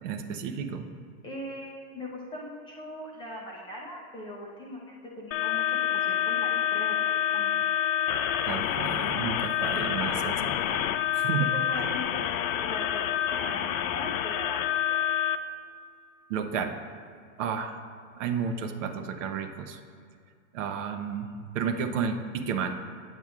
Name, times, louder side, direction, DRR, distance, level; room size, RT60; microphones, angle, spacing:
voice 1, 0.0-0.9 8.5-11.5 16.3-16.8 17.4-17.8 18.2-19.8 20.5-22.8, right 6 dB, 60° right, 7 dB, 0.7 m, -32 dB
voice 2, 1.2-7.0 7.3-7.5 9.7-10.0 10.2-10.3 11.5-15.0, left 1 dB, 10° left, -3 dB, 0.5 m, -40 dB
sound 1, 5.3-15.4, left 10 dB, 70° left, 0.5 m, -27 dB
8.8 x 7.8 x 2.4 m, 2.2 s
hypercardioid pair, 135°, 43 cm